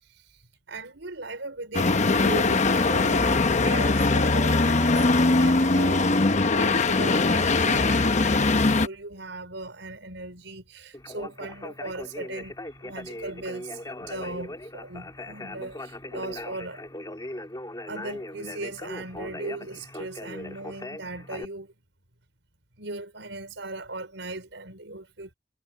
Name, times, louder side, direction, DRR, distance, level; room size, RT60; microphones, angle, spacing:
voice 1, 0.7-6.1 6.6-16.8 17.9-21.7 22.8-25.3, right 2 dB, 85° right, 5.2 m, -38 dB
sound 1, 1.7-8.9, left 3 dB, 40° left, 0.9 m, -21 dB
Conversation, 10.9-21.4, left 1 dB, 20° left, 1.8 m, -39 dB
head